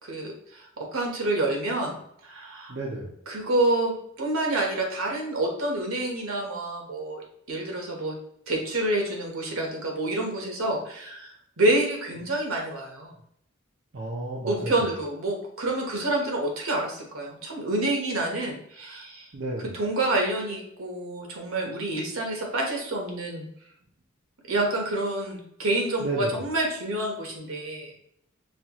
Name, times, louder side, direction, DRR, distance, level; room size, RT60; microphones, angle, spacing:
voice 1, 0.0-2.8 3.3-8.2 8.5-13.1 14.5-19.3 19.7-23.5 24.5-27.9, right 2 dB, 80° right, 1 dB, 1.1 m, -28 dB
voice 2, 2.7-3.2 13.9-14.8 19.3-19.8 26.0-26.4, right 2 dB, 50° right, -2 dB, 0.6 m, -32 dB
5.5 x 2.3 x 2.9 m, 0.71 s
head